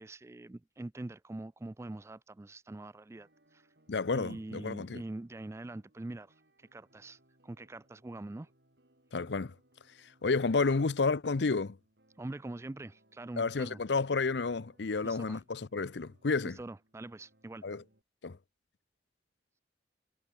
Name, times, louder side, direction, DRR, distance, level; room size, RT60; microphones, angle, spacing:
voice 1, 0.0-3.6 4.1-6.3 6.7-8.5 12.2-13.8 15.0-15.4 16.4-17.6, right 2 dB, 15° right, 0.3 m, -44 dB
sound 1, 3.1-18.0, right 1 dB, 65° right, 4.9 m, -69 dB
voice 2, 3.9-5.0 9.1-9.5 10.2-11.8 13.4-16.6 17.6-17.8 18.2-18.4, left 4 dB, 75° left, 0.7 m, -31 dB
head